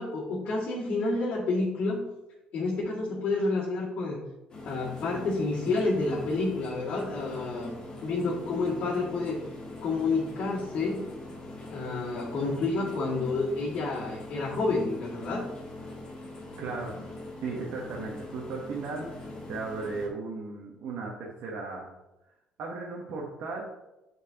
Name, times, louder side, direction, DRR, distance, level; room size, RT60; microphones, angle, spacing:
voice 1, 0.0-2.0 2.5-4.2 4.6-9.4 9.8-11.0 11.7-15.5, left 3 dB, 60° left, -10 dB, 2.2 m, -29 dB
sound 1, 4.5-20.1, left 2 dB, 30° left, 1.5 m, -43 dB
voice 2, 16.6-17.0 17.4-21.9 22.6-23.6, right 4 dB, 65° right, -3 dB, 1.2 m, -36 dB
8.6 x 4.4 x 2.9 m, 0.97 s
cardioid pair, 135°, 3 cm